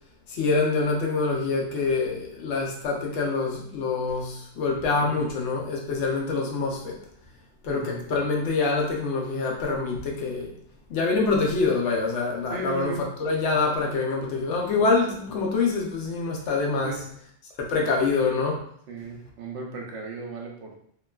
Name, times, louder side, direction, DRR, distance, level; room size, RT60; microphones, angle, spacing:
voice 1, 0.3-7.0 7.6-10.5 10.9-12.9 13.2-16.9 17.7-18.6, left 4 dB, 85° left, -1 dB, 0.9 m, -25 dB
voice 2, 7.7-8.0 12.5-13.1 16.8-17.2 17.7-17.9 18.9-20.8, right 2 dB, 85° right, 0 dB, 1.0 m, -36 dB
3.0 x 2.2 x 2.2 m, 0.66 s
omnidirectional pair, 1.2 m